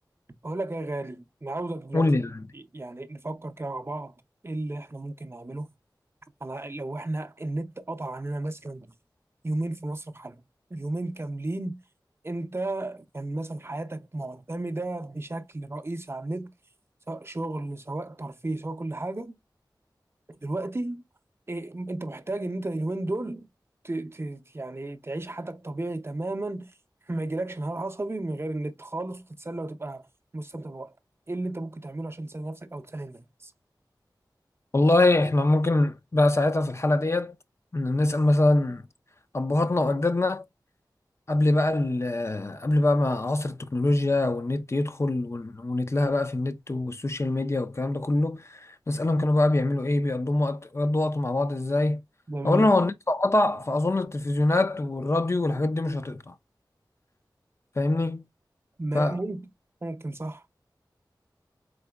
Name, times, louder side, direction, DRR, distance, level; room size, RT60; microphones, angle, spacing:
voice 1, 0.4-2.1 2.5-4.1 4.4-5.7 6.4-8.9 9.4-10.4 10.7-11.8 12.2-16.5 17.1-19.4 20.3-21.0 21.5-23.5 23.8-26.7 27.1-30.0 30.3-30.9 31.3-33.5 52.3-52.7 58.8-59.5 59.8-60.4, right 2 dB, 30° right, 0.5 m, -33 dB
voice 2, 1.9-2.4 34.7-37.4 37.7-38.8 39.3-40.4 41.3-52.0 52.4-56.3 57.8-58.2 58.9-59.1, left 2 dB, 35° left, 0.4 m, -24 dB
4.2 x 3.8 x 2.2 m
wide cardioid pair, 70°, 8 cm